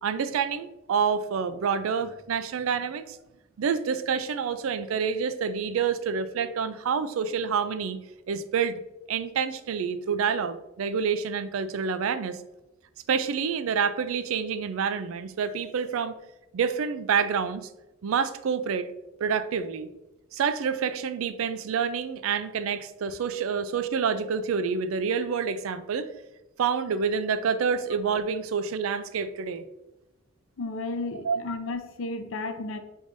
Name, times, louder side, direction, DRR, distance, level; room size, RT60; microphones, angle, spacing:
voice 1, 0.0-3.2 3.6-8.0 8.3-8.8 9.1-12.4 13.1-16.2 16.5-17.7 18.0-18.9 19.2-19.9 20.3-26.1 26.6-29.6 31.2-31.4, right 6 dB, 80° right, 12 dB, 0.4 m, -28 dB
voice 2, 30.6-32.8, left 3 dB, 70° left, 7 dB, 0.5 m, -33 dB
5.1 x 3.4 x 2.5 m, 0.95 s
head